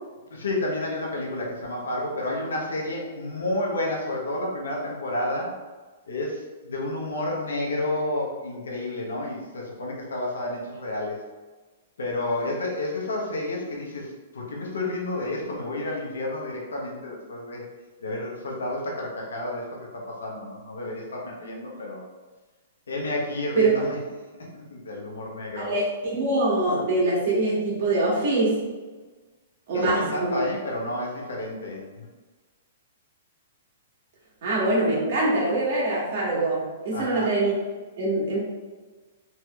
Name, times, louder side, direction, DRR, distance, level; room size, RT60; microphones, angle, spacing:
voice 1, 0.3-5.5 6.1-11.2 12.0-17.7 18.0-22.0 22.9-24.0 24.4-25.7 29.7-32.1 36.9-37.3, left 1 dB, 90° left, -2 dB, 0.8 m, -30 dB
voice 2, 25.6-28.6 29.7-30.4 34.4-37.5 38.0-38.4, right 2 dB, 50° right, -6 dB, 1.4 m, -24 dB
3.2 x 2.9 x 2.3 m, 1.3 s
hypercardioid pair, 140°, 0 cm